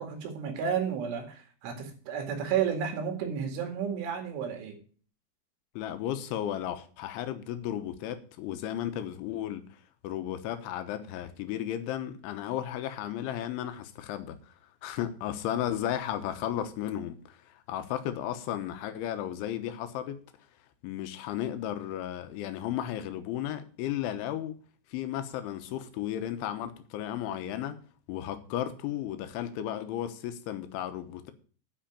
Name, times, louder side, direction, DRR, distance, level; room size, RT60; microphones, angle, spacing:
voice 1, 0.0-4.8, right 7 dB, 75° right, 4.5 m, -32 dB
voice 2, 5.8-9.6 10.0-14.4 14.8-20.2 20.8-24.6 24.9-27.8 28.1-31.3, left 11 dB, 80° left, 3.4 m, -34 dB
10.5 x 5.7 x 8.6 m
omnidirectional pair, 5.6 m